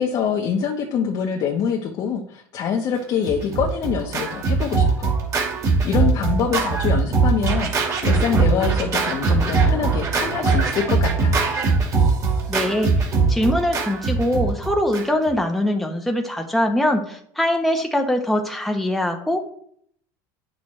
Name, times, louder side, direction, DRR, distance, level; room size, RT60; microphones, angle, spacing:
voice 1, 0.0-5.1 5.8-11.4, left 7 dB, 50° left, 1 dB, 1.1 m, -25 dB
Scratching (performance technique), 3.2-15.3, right 4 dB, 35° right, 2.2 m, -21 dB
voice 2, 12.5-12.9 13.3-19.4, left 1 dB, ahead, 3 dB, 1.0 m, -22 dB
9.3 x 6.3 x 3.2 m, 0.65 s
supercardioid pair, 115°, 9 cm